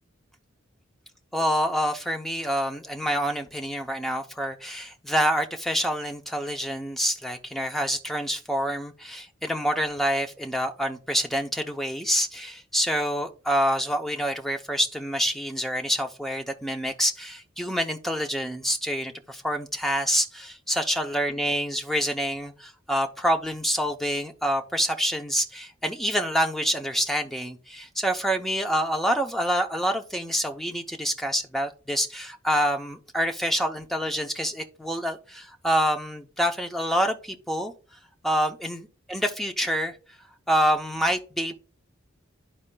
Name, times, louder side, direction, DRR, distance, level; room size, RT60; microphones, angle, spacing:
voice 1, 1.3-37.7 38.2-40.0 40.5-41.5, equal, ahead, 4 dB, 0.6 m, -27 dB
12.5 x 4.3 x 2.2 m, 0.37 s
head